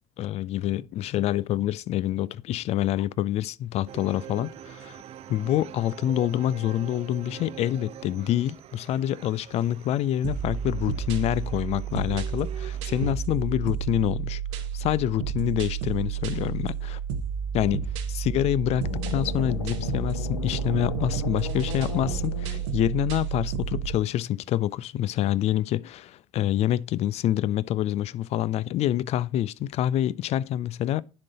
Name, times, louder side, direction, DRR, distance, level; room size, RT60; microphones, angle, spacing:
voice 1, 0.2-5.0 5.3-17.0 17.5-31.0, left 12 dB, 40° left, 0.4 m, -27 dB
sound 1, 3.9-13.1, right 11 dB, 40° right, 0.5 m, -44 dB
sound 2, 10.2-24.0, right 8 dB, 70° right, 0.9 m, -31 dB
sound 3, 18.7-23.0, left 6 dB, 80° left, 1.1 m, -35 dB
10.5 x 3.8 x 4.1 m
figure-of-eight pair, 65°, 16 cm